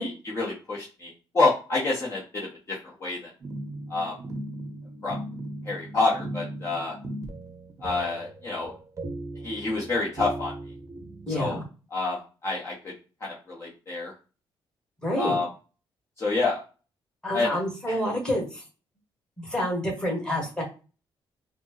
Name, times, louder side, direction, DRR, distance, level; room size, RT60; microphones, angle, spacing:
voice 1, 0.0-2.5 2.8-3.2 3.9-4.1 5.0-5.2 5.7-6.9 7.8-8.7 9.4-10.5 11.3-11.6 11.9-12.2 12.4-12.7 13.2-14.1 15.2-15.5 16.2-16.6 17.3-17.6 17.9-18.0, left 3 dB, 30° left, -5 dB, 0.9 m, -27 dB
sound 1, 3.4-11.7, right 1 dB, 35° right, 0.7 m, -38 dB
voice 2, 11.3-11.6 15.0-15.4 17.2-18.6 19.4-20.6, left 1 dB, 10° left, -2 dB, 1.4 m, -28 dB
4.1 x 2.1 x 2.9 m, 0.34 s
cardioid pair, 135°, 9 cm